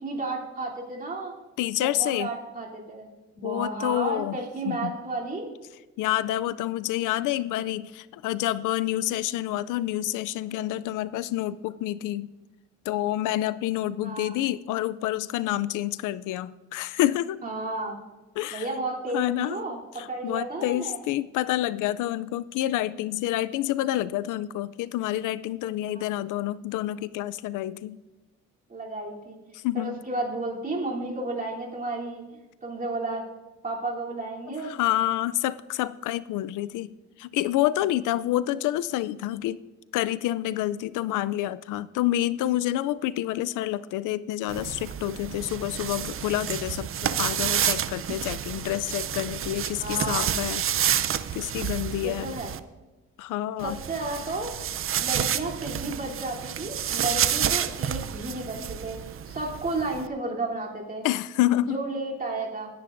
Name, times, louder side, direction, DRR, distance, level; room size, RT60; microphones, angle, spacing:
voice 1, 0.0-1.3 1.8-3.1 3.4-5.5 14.0-14.4 17.4-18.0 18.5-21.0 25.9-26.1 28.7-29.4 29.7-32.2 32.6-33.2 33.6-34.7 49.8-50.3 52.0-52.5 53.6-54.5 55.0-61.1 61.7-62.7, right 2 dB, 30° right, -3 dB, 3.2 m, -32 dB
voice 2, 1.6-2.3 3.4-4.4 4.7-4.9 6.0-12.3 12.9-17.4 18.4-18.7 19.1-19.6 20.0-28.0 29.5-30.0 34.6-39.6 39.9-50.6 51.3-52.3 53.2-53.8 61.0-61.8, left 14 dB, 85° left, 17 dB, 0.5 m, -28 dB
sound 1, 44.5-52.6 53.6-60.1, right 9 dB, 45° right, 0.6 m, -29 dB
19.0 x 10.0 x 2.6 m, 1.1 s
cardioid pair, 90°, 30 cm